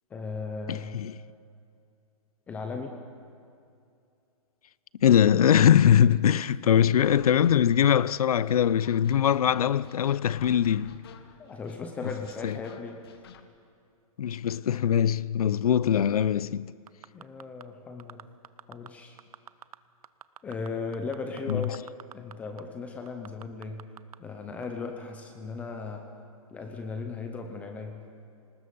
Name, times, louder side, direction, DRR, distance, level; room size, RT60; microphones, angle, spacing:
voice 1, 0.1-1.0 2.5-3.0 11.4-13.1 17.1-18.3 18.7-19.2 20.4-23.9 24.2-26.1 26.5-28.1, left 4 dB, 5° left, 0.7 m, -37 dB
voice 2, 0.7-1.1 5.0-11.0 12.4-12.5 14.2-16.7 21.5-21.6, left 9 dB, 80° left, 0.6 m, -22 dB
sound 1, 7.0-13.4, left 8 dB, 40° left, 1.2 m, -49 dB
sound 2, 16.9-17.6 18.0-18.9 19.2-19.8 20.0-22.3 22.6-22.7 23.1-24.2 24.6-24.7, right 9 dB, 75° right, 0.7 m, -46 dB
26.5 x 19.5 x 5.4 m
hypercardioid pair, 170°, 19 cm